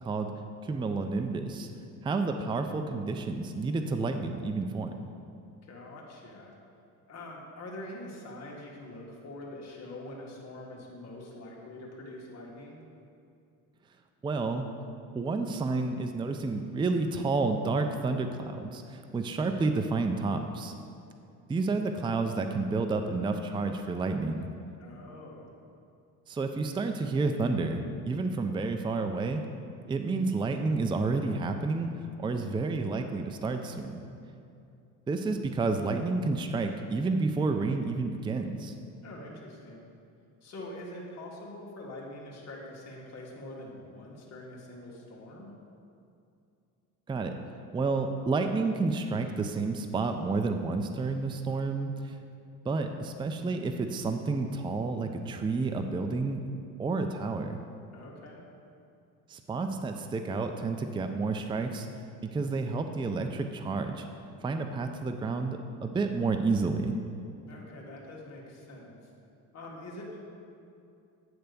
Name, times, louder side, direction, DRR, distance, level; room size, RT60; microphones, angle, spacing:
voice 1, 0.6-1.7 2.0-4.9 14.2-14.7 15.1-20.7 21.5-24.5 26.3-29.4 29.9-31.9 32.2-34.0 35.1-38.7 47.1-47.3 47.7-52.2 52.6-56.4 56.8-57.6 59.3-61.9 62.2-64.0 64.4-67.0, right 3 dB, 15° right, 6 dB, 0.4 m, -30 dB
voice 2, 5.6-6.5 7.1-12.8 24.8-25.5 39.0-39.8 40.4-45.5 57.9-58.4 67.5-68.9 69.5-70.2, left 1 dB, 45° left, -3 dB, 1.7 m, -44 dB
8.9 x 3.4 x 6.8 m, 2.5 s
supercardioid pair, 80°, 35 cm